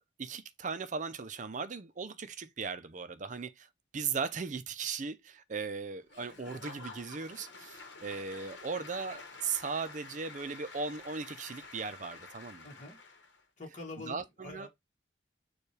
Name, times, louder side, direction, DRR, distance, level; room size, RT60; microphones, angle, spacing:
voice 1, 0.0-12.7 14.1-14.7, right 5 dB, 40° right, 0.5 m, -38 dB
Applause / Crowd, 6.1-13.4, left 3 dB, 70° left, 1.0 m, -49 dB
voice 2, 12.6-13.0 13.6-14.7, left 2 dB, 40° left, 1.1 m, -45 dB
6.9 x 2.3 x 3.2 m
head